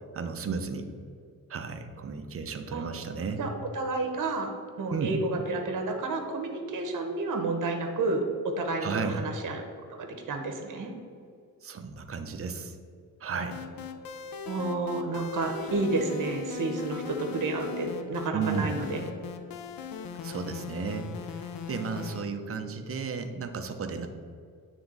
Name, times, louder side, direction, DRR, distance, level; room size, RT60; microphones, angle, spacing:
voice 1, 0.1-0.9 1.5-3.4 4.9-5.2 8.8-9.3 11.6-12.8 13.2-13.6 18.3-18.7 20.2-24.1, right 5 dB, 40° right, 6 dB, 0.6 m, -33 dB
voice 2, 3.4-4.5 4.8-8.2 8.6-9.6 10.0-10.9 14.5-19.0, right 3 dB, 60° right, 3 dB, 1.1 m, -30 dB
sound 1, 13.5-22.2, left 6 dB, 80° left, 0.6 m, -39 dB
9.1 x 3.5 x 3.9 m, 2.3 s
wide cardioid pair, 120°, 35 cm